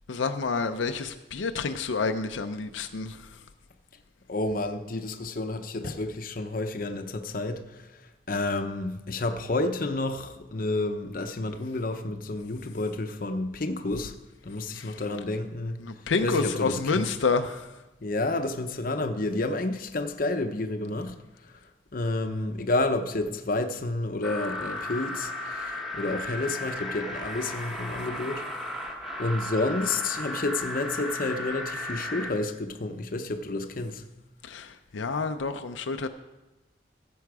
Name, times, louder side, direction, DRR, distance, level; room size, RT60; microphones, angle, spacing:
voice 1, 0.1-3.2 14.8-14.9 15.8-17.6 34.4-36.1, left 4 dB, 80° left, 0.6 m, -28 dB
voice 2, 4.3-7.9 8.3-14.1 14.4-15.8 16.2-17.1 18.0-21.1 21.9-28.4 28.7-28.9 29.2-34.0, left 2 dB, 45° left, 0.7 m, -30 dB
sound 1, 24.2-32.3, left 1 dB, ahead, 1.1 m, -35 dB
15.0 x 7.0 x 4.8 m
head